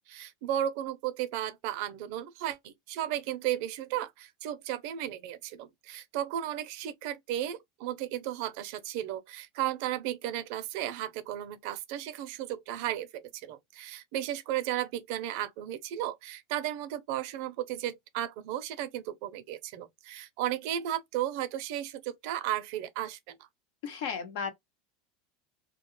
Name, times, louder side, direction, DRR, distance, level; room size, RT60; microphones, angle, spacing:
voice 1, 0.0-23.4, right 12 dB, 65° right, 0.5 m, -34 dB
voice 2, 23.8-24.5, left 6 dB, 70° left, 0.9 m, -34 dB
2.3 x 2.2 x 3.0 m
supercardioid pair, 135°, 0 cm